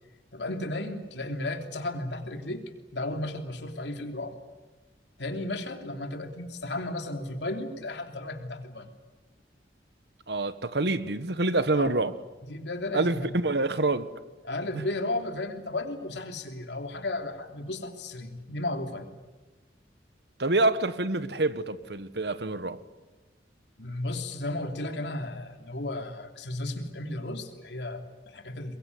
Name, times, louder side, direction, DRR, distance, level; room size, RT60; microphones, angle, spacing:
voice 1, 0.3-2.6 2.9-4.4 5.2-8.9 11.7-12.1 12.4-13.3 14.4-19.1 23.8-28.8, left 2 dB, 75° left, 3.1 m, -34 dB
voice 2, 10.3-12.2 12.9-14.1 20.4-22.8, right 2 dB, 70° right, 1.3 m, -26 dB
22.5 x 22.5 x 9.6 m
head